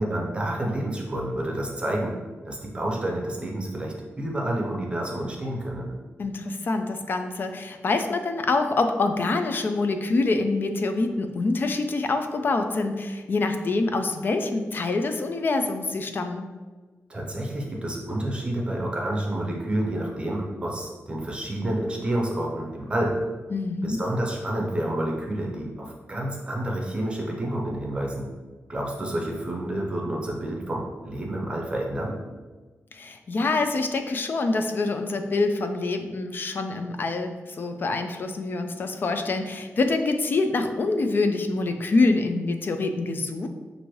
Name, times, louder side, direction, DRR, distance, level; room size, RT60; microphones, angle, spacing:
voice 1, 0.0-2.1 2.4-5.9 17.1-23.1 23.8-28.3 28.7-32.2, right 1 dB, 20° right, -1 dB, 0.7 m, -29 dB
voice 2, 6.2-16.5 23.5-24.0 32.9-43.5, left 3 dB, 45° left, 6 dB, 0.4 m, -25 dB
5.9 x 2.6 x 3.1 m, 1.3 s
wide cardioid pair, 155°, 5 cm